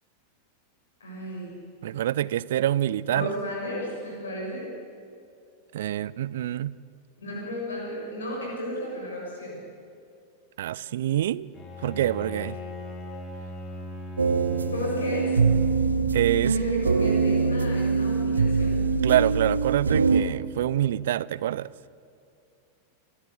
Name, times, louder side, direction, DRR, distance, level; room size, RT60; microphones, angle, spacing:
voice 1, 1.0-1.6 3.1-4.7 7.2-9.6 14.7-15.4 16.5-18.8, equal, 70° left, -2 dB, 6.8 m, -33 dB
voice 2, 1.8-3.3 5.7-6.7 10.6-11.5 11.8-12.6 16.1-16.6 19.0-21.7, right 12 dB, 60° right, 20 dB, 0.5 m, -26 dB
Bowed string instrument, 11.5-16.9, left 1 dB, 30° left, 3.7 m, -39 dB
sound 1, 14.2-20.2, right 4 dB, 75° right, 1.1 m, -23 dB
30.0 x 13.0 x 8.2 m, 2.5 s
figure-of-eight pair, 90°, 0 cm